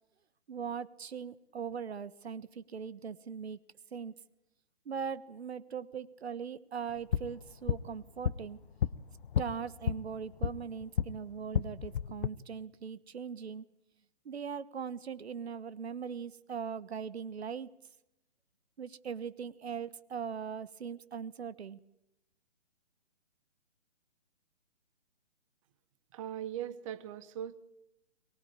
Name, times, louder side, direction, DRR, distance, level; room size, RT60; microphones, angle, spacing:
voice 1, 0.5-3.6 3.9-4.1 4.8-8.6 9.4-13.6 14.2-17.7 18.8-21.8, right 6 dB, 65° right, 17 dB, 1.3 m, -40 dB
sound 1, 6.9-11.1 11.4-12.3, left 9 dB, 45° left, 0.8 m, -33 dB
voice 2, 26.1-27.6, right 10 dB, 30° right, 13 dB, 1.0 m, -40 dB
23.0 x 19.0 x 8.8 m, 0.87 s
hypercardioid pair, 145°, 35 cm